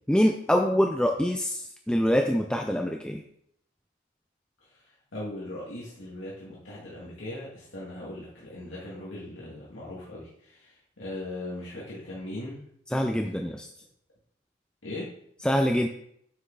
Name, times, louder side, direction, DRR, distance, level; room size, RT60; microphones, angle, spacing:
voice 1, 0.1-1.6 1.9-3.2 12.9-13.7 15.4-15.9, equal, 5° left, 3 dB, 0.5 m, -24 dB
voice 2, 5.1-12.6 14.8-15.1, left 1 dB, 75° left, -7 dB, 2.3 m, -39 dB
9.7 x 6.2 x 4.0 m, 0.71 s
head